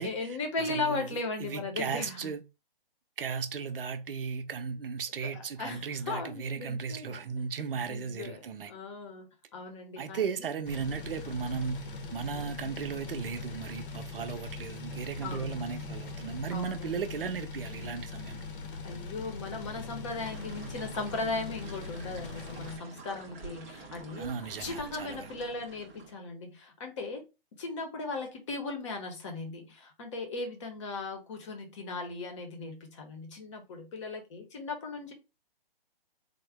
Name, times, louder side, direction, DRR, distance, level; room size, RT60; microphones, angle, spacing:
voice 1, 0.0-2.3 5.2-7.2 7.7-8.4 8.7-10.5 15.2-16.0 16.5-16.9 18.8-24.3 24.6-27.2 27.6-35.1, left 3 dB, 30° left, 0.8 m, -37 dB
voice 2, 0.6-2.4 3.2-8.7 10.0-11.8 12.1-18.5 24.2-25.3, right 6 dB, 70° right, 0.7 m, -36 dB
sound 1, 10.7-22.8, left 3 dB, 65° left, 0.8 m, -41 dB
sound 2, 20.1-26.1, right 5 dB, 15° right, 0.5 m, -48 dB
3.7 x 2.1 x 3.4 m
hypercardioid pair, 150°, 29 cm